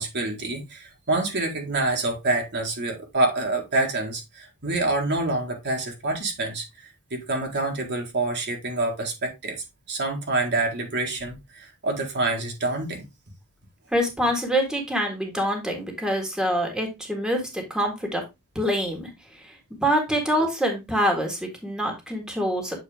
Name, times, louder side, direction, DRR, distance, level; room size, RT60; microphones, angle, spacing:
voice 1, 0.0-6.6 7.1-9.6 9.9-13.0, right 2 dB, 50° right, 1.8 m, -27 dB
voice 2, 13.9-18.2 18.5-19.1 19.4-19.5 19.8-22.8, equal, 5° right, 1.7 m, -25 dB
7.7 x 4.3 x 3.5 m
head